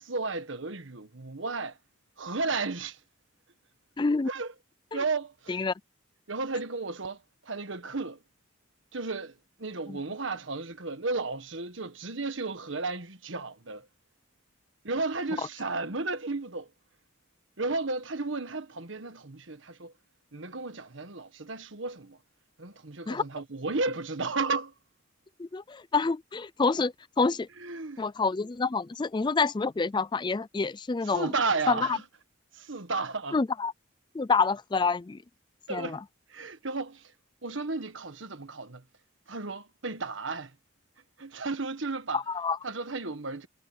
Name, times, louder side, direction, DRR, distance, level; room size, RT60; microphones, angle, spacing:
voice 1, 0.0-1.8 2.2-3.0 4.3-4.5 4.9-5.6 6.3-7.2 7.4-8.2 8.9-9.3 9.6-13.9 14.8-16.7 17.6-19.9 20.3-22.2 22.6-24.7 27.6-28.1 31.0-32.0 32.5-33.4 35.7-36.0 36.3-37.1 37.4-38.8 39.3-40.5 41.2-42.2 42.6-43.5, right 3 dB, 70° right, 1.5 m, -33 dB
voice 2, 4.0-4.3 5.5-5.7 9.9-10.0 23.1-23.2 25.4-27.5 28.0-31.3 31.7-32.0 33.3-33.7 34.1-35.2 35.7-36.0 42.1-42.6, left 4 dB, 20° left, 0.4 m, -27 dB
head